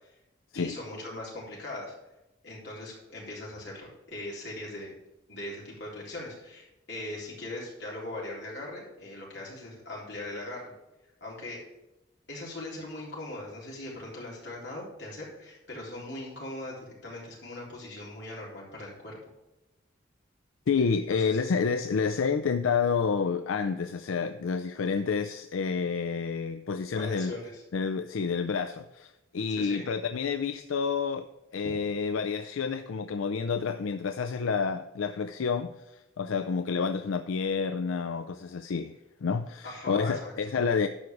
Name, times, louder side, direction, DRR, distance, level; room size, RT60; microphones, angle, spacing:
voice 1, 0.5-1.9 2.4-4.9 5.3-10.7 11.2-11.6 12.3-19.2 21.1-21.4 26.9-27.6 29.5-29.9 39.6-40.3, left 1 dB, 55° left, 3.9 m, -40 dB
voice 2, 20.7-27.3 27.7-31.3 31.5-35.7 36.2-38.9 39.2-40.9, left 5 dB, 85° left, 0.4 m, -29 dB
11.5 x 4.8 x 6.5 m
head